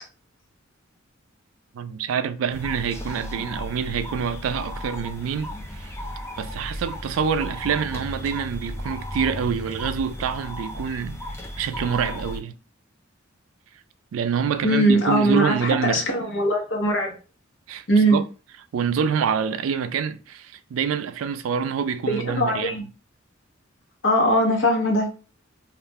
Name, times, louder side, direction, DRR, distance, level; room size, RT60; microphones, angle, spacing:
voice 1, 1.7-6.0 6.4-11.2 11.6-12.5 14.1-16.1 17.7-17.8 18.1-18.2 18.7-22.8, right 7 dB, 85° right, 0.3 m, -26 dB
sound 1, 2.5-12.4, left 1 dB, 15° left, 0.4 m, -35 dB
voice 2, 14.6-17.1 17.9-18.2 22.1-22.8 24.0-25.1, equal, 65° left, 0.8 m, -21 dB
2.4 x 2.1 x 3.4 m
head